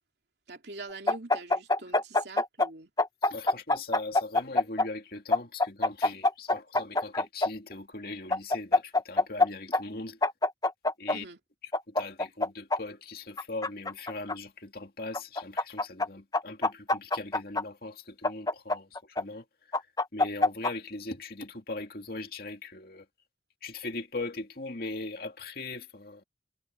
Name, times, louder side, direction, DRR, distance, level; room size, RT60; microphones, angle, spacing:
voice 1, 0.5-2.9 11.1-11.4, right 2 dB, 70° right, 3.0 m, -44 dB
sound 1, 1.1-2.7 3.0-4.9 5.3-7.5 8.3-9.5 9.7-9.8 10.2-11.2 11.7-12.8 13.4-14.4 15.1-16.1 16.3-17.6 18.2-19.2 19.7-20.7, left 2 dB, 20° left, 1.1 m, -25 dB
voice 2, 3.2-10.2 11.0-11.2 11.9-19.5 20.1-23.1 23.6-26.2, left 2 dB, 55° left, 2.4 m, -40 dB
head